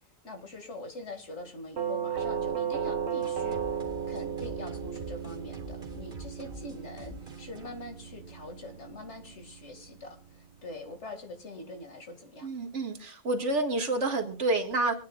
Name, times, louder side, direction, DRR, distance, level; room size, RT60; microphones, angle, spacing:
voice 1, 0.2-12.5, left 2 dB, 80° left, 4 dB, 2.4 m, -44 dB
Doorbell, 1.8-10.6, right 7 dB, 70° right, 1.3 m, -35 dB
sound 1, 3.2-8.7, equal, 50° right, 2.1 m, -47 dB
voice 2, 12.4-15.0, right 2 dB, 85° right, 3 dB, 2.1 m, -29 dB
25.0 x 9.4 x 2.4 m, 0.39 s
omnidirectional pair, 1.2 m